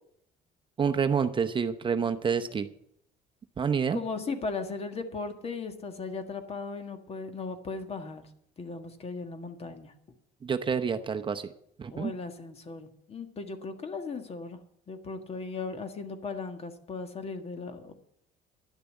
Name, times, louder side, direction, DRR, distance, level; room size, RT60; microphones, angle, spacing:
voice 1, 0.8-2.7 3.6-4.0 10.4-11.5 11.8-12.1, right 6 dB, 30° right, 7 dB, 0.7 m, -28 dB
voice 2, 3.9-8.3 8.6-9.9 11.9-14.6 14.9-17.9, left 4 dB, 35° left, 8 dB, 1.6 m, -37 dB
11.0 x 6.8 x 9.3 m, 0.71 s
cardioid pair, 110°, 17 cm